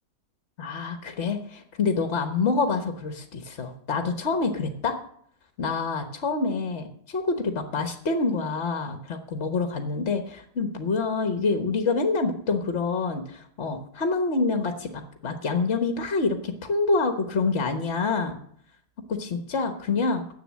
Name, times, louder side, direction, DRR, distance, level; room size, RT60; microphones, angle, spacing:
voice 1, 0.6-5.0 5.6-18.4 19.1-20.2, left 4 dB, 50° left, 6 dB, 1.4 m, -27 dB
10.5 x 8.1 x 7.5 m, 0.65 s
omnidirectional pair, 1.6 m